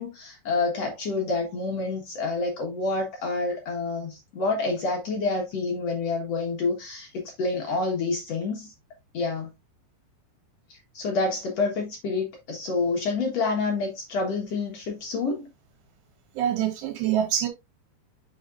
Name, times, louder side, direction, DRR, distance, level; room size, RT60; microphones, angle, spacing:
voice 1, 0.0-8.7 9.1-9.5 10.7-15.5, left 3 dB, 65° left, 1.6 m, -28 dB
voice 2, 16.3-17.5, right 10 dB, 80° right, 3.3 m, -25 dB
6.4 x 6.4 x 2.5 m
omnidirectional pair, 5.0 m